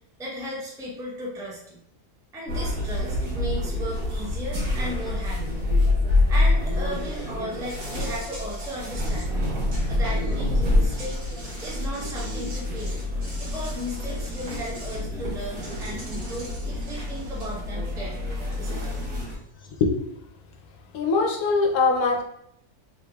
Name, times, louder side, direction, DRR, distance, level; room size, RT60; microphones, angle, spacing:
voice 1, 0.2-1.8 2.3-5.6 6.3-9.3 9.8-11.3 11.6-13.0 13.4-19.4, equal, 5° right, -5 dB, 0.3 m, -36 dB
sound 1, 2.5-19.3, left 2 dB, 80° right, 1.6 m, -27 dB
Insect, 7.6-10.4 10.7-15.0 15.6-17.6, right 1 dB, 45° right, 0.9 m, -43 dB
voice 2, 20.9-22.2, left 4 dB, 75° left, 2 dB, 1.1 m, -21 dB
3.3 x 3.3 x 2.3 m, 0.75 s
omnidirectional pair, 1.6 m